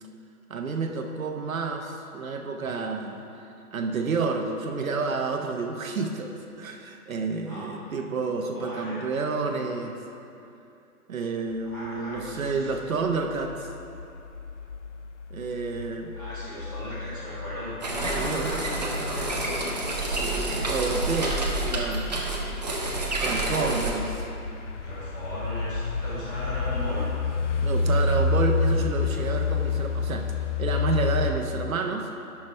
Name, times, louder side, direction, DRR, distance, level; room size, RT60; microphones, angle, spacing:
voice 1, 0.5-3.2 3.7-6.3 6.6-10.0 11.1-13.7 15.3-16.1 18.2-18.5 20.1-22.1 23.2-24.3 27.6-30.2 30.6-32.1, right 4 dB, 65° right, 3 dB, 0.8 m, -29 dB
voice 2, 8.5-9.1 11.6-12.8 16.1-19.8 23.3-23.8 24.8-27.1, equal, 15° left, -11 dB, 1.5 m, -37 dB
sound 1, 12.2-31.3, left 4 dB, 55° left, 0.6 m, -30 dB
sound 2, 17.8-23.9, right 2 dB, 30° right, 0.6 m, -29 dB
12.0 x 5.9 x 3.3 m, 2.8 s
hypercardioid pair, 175°, 45 cm